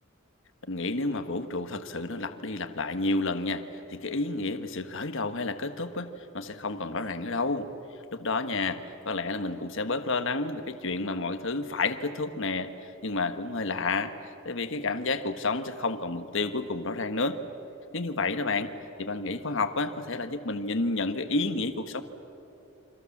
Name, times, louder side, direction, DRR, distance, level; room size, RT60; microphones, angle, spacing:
voice 1, 0.7-7.7 8.1-12.7 13.0-14.1 14.4-17.4 17.9-18.7 19.0-22.0, left 3 dB, 65° left, 9 dB, 1.4 m, -30 dB
29.0 x 25.0 x 7.3 m, 2.8 s
head